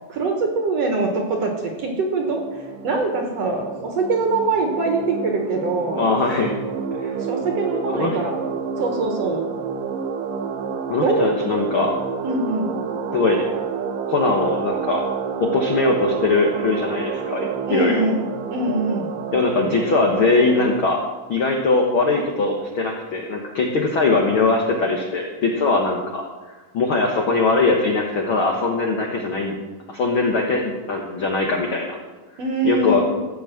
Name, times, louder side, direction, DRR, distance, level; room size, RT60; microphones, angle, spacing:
voice 1, 0.1-2.4 2.8-6.1 7.2-8.4 8.8-9.5 11.0-11.3 12.2-12.7 17.7-18.2 18.5-19.1 32.4-33.0, right 3 dB, 55° right, 2 dB, 2.0 m, -23 dB
sound 1, 2.3-20.8, right 6 dB, 75° right, 2.4 m, -29 dB
voice 2, 5.9-6.6 7.0-7.1 7.9-8.2 10.9-12.0 13.1-13.4 14.1-15.0 15.4-18.1 19.3-21.0 21.3-26.2 26.7-29.5 29.9-32.0 32.6-33.0, left 3 dB, 70° left, 1 dB, 1.2 m, -21 dB
15.0 x 6.1 x 7.5 m, 1.3 s
omnidirectional pair, 4.2 m